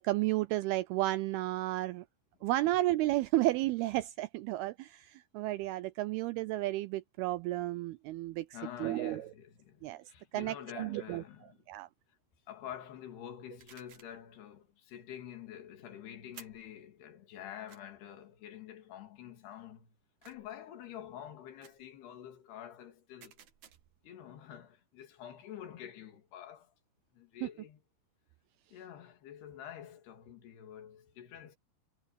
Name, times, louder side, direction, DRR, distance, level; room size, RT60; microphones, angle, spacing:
voice 1, 0.0-2.1 2.4-8.5 8.8-9.3 9.8-10.0 10.3-11.2 11.7-11.9 27.4-27.5, right 17 dB, 80° right, 2.3 m, -32 dB
voice 2, 8.5-11.6 12.5-20.0 20.2-23.4 24.0-26.7 27.1-27.8 28.7-31.6, left 10 dB, 70° left, 4.4 m, -48 dB
sound 1, 13.6-14.2 16.3-16.7 17.7-17.8 20.2-20.6 21.6-21.9 23.2-24.0, right 9 dB, 55° right, 2.6 m, -56 dB
omnidirectional pair, 4.9 m